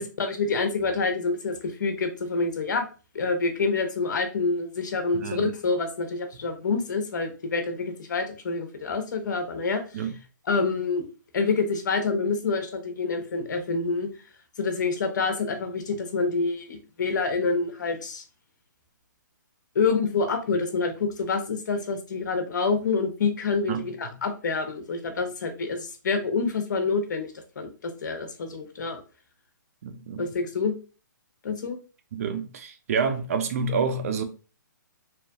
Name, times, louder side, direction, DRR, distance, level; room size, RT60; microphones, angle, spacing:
voice 1, 0.0-2.9 3.1-10.0 10.5-11.0 11.3-14.1 14.6-18.2 19.7-27.3 27.6-29.0 30.2-30.7 31.4-31.8, left 4 dB, 65° left, 0.7 m, -27 dB
voice 2, 5.1-5.5 9.9-10.1 23.7-23.9 29.8-30.3 32.1-34.2, right 5 dB, 45° right, 0.4 m, -28 dB
2.8 x 2.4 x 2.2 m
hypercardioid pair, 155°, 11 cm